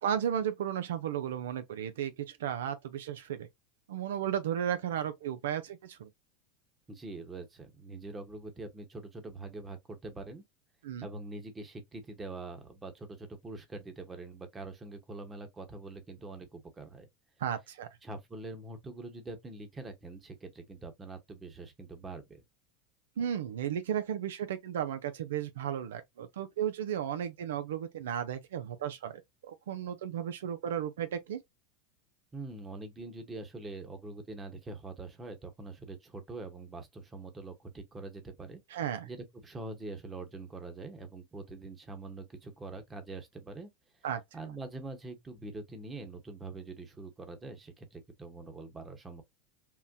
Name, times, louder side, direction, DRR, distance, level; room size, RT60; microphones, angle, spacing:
voice 1, 0.0-3.5 3.9-6.1 10.8-11.1 17.4-17.9 23.2-29.2 29.5-31.4 38.7-39.1 44.0-44.2, right 9 dB, 80° right, 0.4 m, -34 dB
voice 2, 6.9-10.4 11.0-17.1 18.0-22.4 32.3-38.6 39.1-43.7 44.3-49.2, right 3 dB, 20° right, 1.0 m, -44 dB
3.7 x 2.1 x 2.5 m
hypercardioid pair, 95°, 0 cm